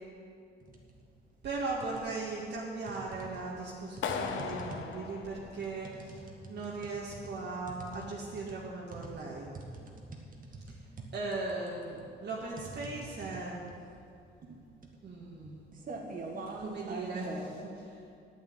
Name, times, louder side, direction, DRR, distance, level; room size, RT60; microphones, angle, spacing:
sound 1, 0.6-1.0 1.4-2.3 2.9-17.5, right 2 dB, 45° right, 1.9 m, -45 dB
voice 1, 1.4-6.2 6.5-9.5 11.1-13.7 15.0-15.6 16.6-17.9, right 3 dB, 60° right, -5 dB, 2.1 m, -38 dB
Clapping, 4.0-6.1, left 6 dB, 75° left, 1.0 m, -37 dB
9.1 x 9.0 x 8.6 m, 2.5 s
cardioid pair, 90°, 20 cm